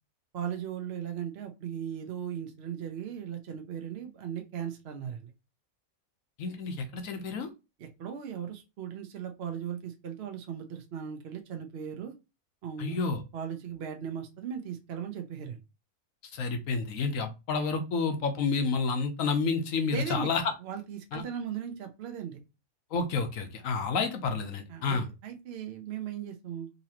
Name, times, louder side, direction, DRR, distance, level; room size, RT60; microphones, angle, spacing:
voice 1, 0.3-5.3 7.8-12.1 12.6-13.0 13.3-15.6 19.9-20.3 20.6-22.4 24.7-26.7, right 8 dB, 55° right, 5 dB, 0.8 m, -37 dB
voice 2, 6.4-7.5 12.8-13.2 16.3-20.4 21.1-21.2 22.9-25.1, left 4 dB, 75° left, 6 dB, 1.1 m, -30 dB
4.0 x 2.8 x 2.8 m, 0.26 s
omnidirectional pair, 1.5 m